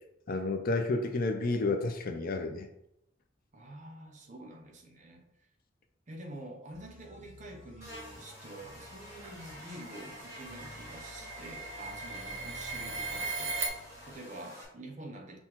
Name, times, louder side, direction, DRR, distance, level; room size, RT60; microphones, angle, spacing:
voice 1, 0.3-2.7, left 3 dB, 50° left, 0.4 m, -30 dB
voice 2, 3.5-5.2 6.1-15.4, right 1 dB, 40° right, 0.6 m, -47 dB
sound 1, 6.7-14.3, left 1 dB, 80° left, 1.2 m, -54 dB
Buzz, 7.8-14.6, left 1 dB, 15° right, 1.3 m, -49 dB
sound 2, 8.9-13.7, right 3 dB, 75° right, 0.7 m, -39 dB
5.6 x 2.2 x 2.9 m
head